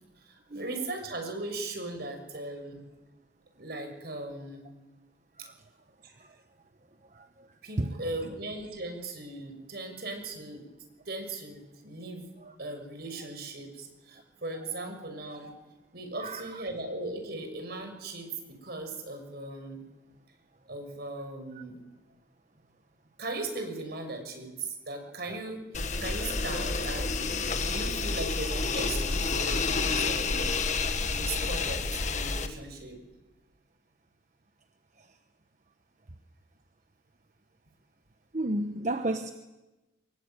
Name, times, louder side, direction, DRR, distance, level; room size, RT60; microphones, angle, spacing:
voice 1, 0.2-2.8 3.6-4.7 5.4-5.5 6.0-6.2 7.6-10.6 11.0-12.3 12.6-15.5 15.9-19.8 20.7-21.8 23.2-25.6 26.0-27.2 27.5-30.5 31.1-33.0, right 2 dB, 60° right, 6.4 m, -38 dB
voice 2, 7.1-7.5 7.8-7.9 12.4-12.5 14.7-14.9 16.2-16.6 35.0-35.1 38.3-39.3, right 1 dB, 45° right, 1.2 m, -33 dB
sound 1, 25.7-32.5, left 4 dB, 45° left, 1.8 m, -29 dB
24.0 x 23.0 x 9.1 m
head